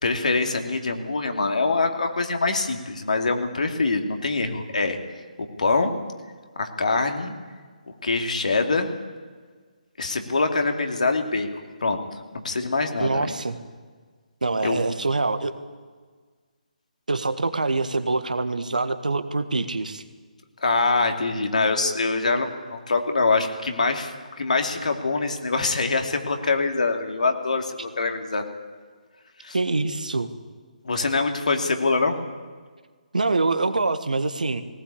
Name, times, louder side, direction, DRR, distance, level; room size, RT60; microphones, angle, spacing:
voice 1, 0.0-5.0 5.6-5.9 6.6-7.3 7.9-8.9 10.0-11.5 11.8-13.3 14.6-14.8 20.6-28.4 29.4-29.6 30.8-32.2, left 3 dB, 60° left, 4 dB, 2.7 m, -24 dB
voice 2, 13.0-13.6 14.4-15.5 17.1-20.0 29.5-30.3 33.1-34.6, right 3 dB, 65° right, 10 dB, 1.6 m, -25 dB
19.0 x 18.5 x 8.5 m, 1.5 s
figure-of-eight pair, 140°, 4 cm